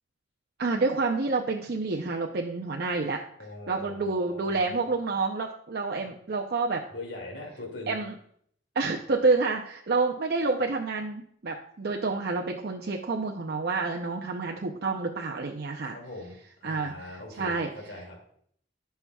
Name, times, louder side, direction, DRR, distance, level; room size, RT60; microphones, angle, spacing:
voice 1, 0.6-3.2 3.7-6.8 7.9-8.1 8.8-15.9 16.6-17.0 17.4-17.7, right 3 dB, 55° right, 1 dB, 0.6 m, -28 dB
voice 2, 3.4-4.7 6.9-7.9 15.8-18.2, left 2 dB, 75° left, -1 dB, 2.3 m, -42 dB
14.5 x 5.6 x 2.3 m, 0.65 s
head